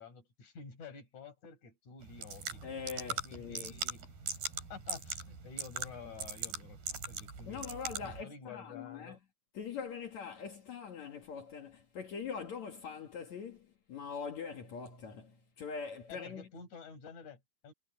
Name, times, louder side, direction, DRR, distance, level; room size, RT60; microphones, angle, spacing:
voice 1, 0.0-2.6 3.0-4.0 4.7-7.6 8.0-9.2 16.1-17.7, left 5 dB, 40° left, 7.2 m, -50 dB
sound 1, 2.0-8.2, right 5 dB, 50° right, 7.3 m, -41 dB
voice 2, 2.6-3.8 7.5-9.2 9.5-16.5, left 6 dB, 60° left, 1.9 m, -43 dB
omnidirectional pair, 5.6 m